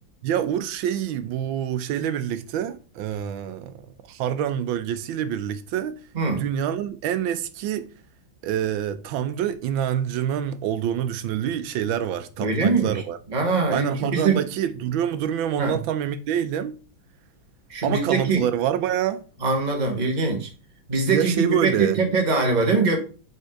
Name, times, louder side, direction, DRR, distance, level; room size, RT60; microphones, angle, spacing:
voice 1, 0.2-6.0 6.4-7.9 8.4-13.2 13.7-16.7 17.8-19.2 21.1-22.0, right 9 dB, 85° right, 1.4 m, -26 dB
voice 2, 12.4-13.0 13.3-14.5 15.5-15.8 17.7-18.4 19.4-20.5 20.9-23.0, right 4 dB, 25° right, 1.4 m, -22 dB
5.4 x 4.4 x 4.8 m
omnidirectional pair, 2.1 m